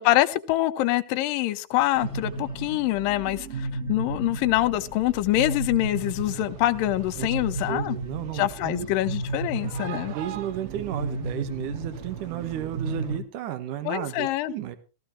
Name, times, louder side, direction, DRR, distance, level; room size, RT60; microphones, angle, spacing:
voice 1, 0.0-8.0 8.3-10.1 13.9-14.5, left 16 dB, 80° left, 2.4 m, -25 dB
sound 1, 2.0-13.2, right 2 dB, 30° right, 1.3 m, -34 dB
sound 2, 6.0-13.2, right 14 dB, 90° right, 2.7 m, -41 dB
voice 2, 7.7-8.9 9.8-14.8, right 11 dB, 70° right, 2.7 m, -33 dB
16.5 x 14.0 x 3.1 m
omnidirectional pair, 4.0 m